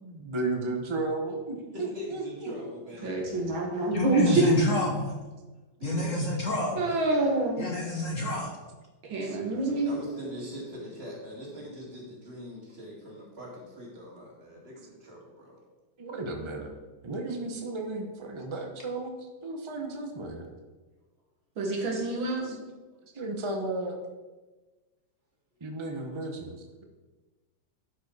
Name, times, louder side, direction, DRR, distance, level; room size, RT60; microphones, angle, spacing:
voice 1, 0.0-2.5 9.2-9.4 16.0-16.7 17.0-20.5 22.4-22.6 23.1-24.0 25.6-26.8, right 2 dB, 50° right, 2 dB, 0.3 m, -34 dB
voice 2, 1.7-3.2 5.8-7.2 9.8-15.6 26.0-26.1, equal, 30° right, -3 dB, 2.5 m, -42 dB
voice 3, 3.0-4.4 6.8-7.7 9.0-10.0 21.6-22.6, right 3 dB, 75° right, -1 dB, 2.5 m, -27 dB
voice 4, 3.9-5.2 5.8-6.9 7.6-8.6, left 1 dB, 50° left, 0 dB, 1.1 m, -28 dB
11.5 x 4.9 x 4.7 m, 1.2 s
omnidirectional pair, 2.2 m